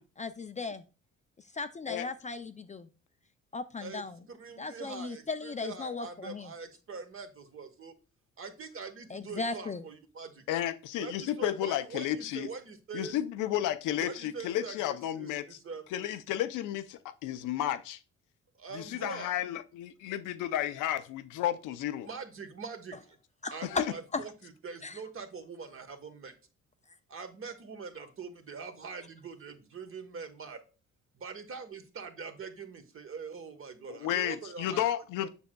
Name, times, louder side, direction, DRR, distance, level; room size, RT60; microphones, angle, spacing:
voice 1, 0.2-0.8 1.5-2.9 3.5-4.2 4.6-6.5 9.1-9.8 23.4-23.8 24.1-24.2 24.8-25.0, left 4 dB, 25° left, 0.4 m, -36 dB
voice 2, 3.8-8.0 8.4-10.4 11.0-13.1 14.0-16.1 18.5-19.3 22.0-23.2 23.5-26.3 27.1-30.6 31.2-34.9 35.2-35.3, right 5 dB, 45° right, 1.1 m, -43 dB
voice 3, 10.5-12.5 12.9-15.6 15.9-18.0 18.7-22.1 23.6-23.8 33.9-35.3, left 12 dB, 90° left, 0.6 m, -32 dB
7.0 x 6.2 x 2.2 m
cardioid pair, 90°, 30 cm